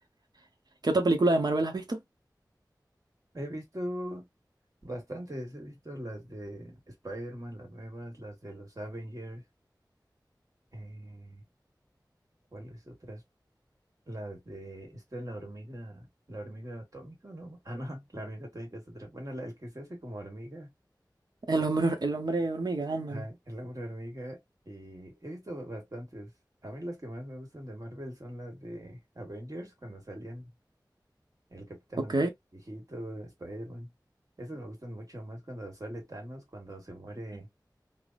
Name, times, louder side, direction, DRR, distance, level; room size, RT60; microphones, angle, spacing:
voice 1, 0.8-2.0 21.5-23.2 32.1-32.3, right 2 dB, 65° right, 0.7 m, -27 dB
voice 2, 3.3-4.3 4.8-9.4 10.7-11.4 12.5-13.2 14.1-20.7 23.1-26.3 26.6-30.5 31.5-33.9 34.4-37.5, right 1 dB, 50° right, 1.5 m, -41 dB
3.3 x 2.0 x 2.5 m
wide cardioid pair, 55°, 7 cm